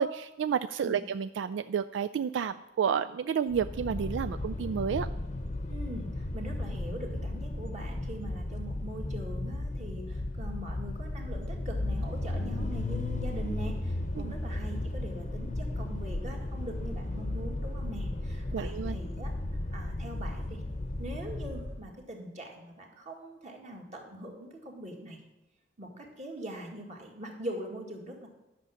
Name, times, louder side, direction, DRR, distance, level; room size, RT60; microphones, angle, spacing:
voice 1, 0.0-5.1 18.5-19.0, right 7 dB, 85° right, 12 dB, 0.3 m, -30 dB
sound 1, 3.5-21.9, left 1 dB, 40° left, 0.7 m, -35 dB
voice 2, 5.7-19.3 19.7-20.6 21.0-25.2 25.8-28.3, right 1 dB, 40° right, 0 dB, 2.0 m, -42 dB
11.0 x 6.1 x 7.0 m, 0.95 s
head